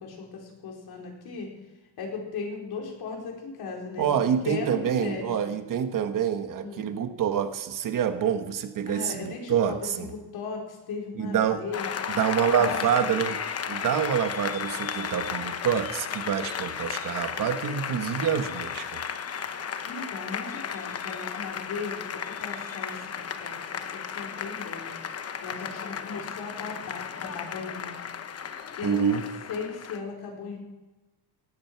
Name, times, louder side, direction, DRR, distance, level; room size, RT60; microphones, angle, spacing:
voice 1, 0.0-1.5 2.0-4.1 4.4-5.5 6.6-6.9 8.8-12.2 12.6-13.1 19.9-23.6 23.9-24.9 25.4-28.0 28.8-29.2 29.5-30.6, left 4 dB, 60° left, 0 dB, 4.8 m, -37 dB
voice 2, 4.0-10.1 11.1-11.6 12.1-13.4 13.7-18.9 28.8-29.2, right 8 dB, 45° right, 8 dB, 1.4 m, -27 dB
Applause, 11.7-30.0, left 7 dB, 35° left, 1.0 m, -34 dB
18.0 x 14.0 x 4.7 m, 1.2 s
cardioid pair, 155°, 43 cm